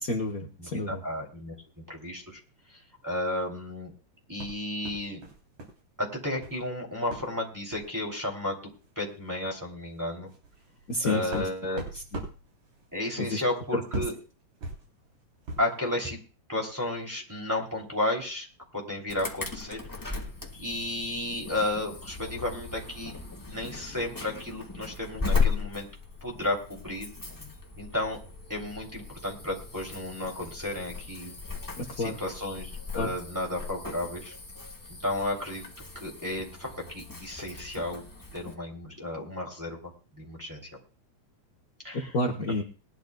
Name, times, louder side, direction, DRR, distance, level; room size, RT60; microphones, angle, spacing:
voice 1, 0.0-1.0 10.9-11.5 11.9-12.0 13.2-13.4 13.7-14.0 31.8-32.2 32.9-33.1 41.9-42.6, left 2 dB, 60° left, 1 dB, 0.9 m, -30 dB
voice 2, 0.6-1.5 1.9-2.4 3.0-3.9 4.3-5.2 6.0-8.7 9.0-10.3 11.0-11.8 12.9-14.1 15.6-16.2 16.5-18.5 18.7-19.8 20.6-23.1 23.4-25.9 26.2-27.1 27.8-28.2 28.5-31.3 32.0-32.7 32.9-34.3 35.0-35.7 36.0-38.0 38.3-39.8 40.2-40.6 41.8-42.1, left 1 dB, 5° right, -2 dB, 2.6 m, -33 dB
sound 1, 4.4-5.8 6.1-6.6 7.1-7.3 7.7-7.9 8.8-8.9 9.3-9.4 9.9-15.8, right 2 dB, 70° right, 4.9 m, -41 dB
Insect / Alarm, 19.1-38.5, left 5 dB, 15° left, 0.6 m, -37 dB
21.0 x 11.5 x 2.3 m, 0.36 s
omnidirectional pair, 3.3 m